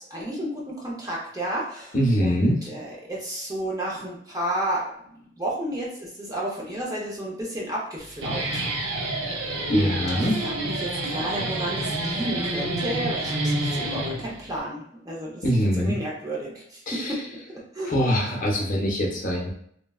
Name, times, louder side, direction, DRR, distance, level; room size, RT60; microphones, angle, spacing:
voice 1, 0.0-8.6 9.3-15.4 15.7-17.2 17.5-18.2, right 1 dB, 20° right, -4 dB, 0.6 m, -32 dB
voice 2, 1.9-2.6 9.7-10.4 15.4-16.0 16.9-17.2 17.9-19.5, equal, 45° left, -1 dB, 0.6 m, -23 dB
Guitar, 8.0-14.6, right 1 dB, 85° right, 0.5 m, -29 dB
3.2 x 2.2 x 2.3 m, 0.67 s
head